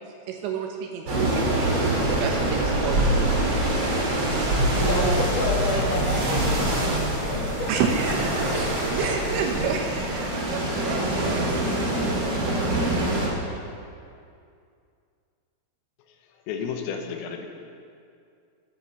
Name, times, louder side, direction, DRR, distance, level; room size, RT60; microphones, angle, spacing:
voice 1, 0.3-3.3 7.7-11.5, right 6 dB, 75° right, 2 dB, 2.9 m, -30 dB
sound 1, 1.1-13.3, right 1 dB, 50° right, 1.6 m, -24 dB
voice 2, 4.7-7.7 8.5-8.6 9.0-9.1, left 1 dB, 55° left, -4 dB, 2.6 m, -29 dB
voice 3, 16.5-17.5, left 6 dB, 85° left, 4 dB, 3.7 m, -31 dB
13.0 x 10.0 x 6.8 m, 2.4 s
omnidirectional pair, 5.9 m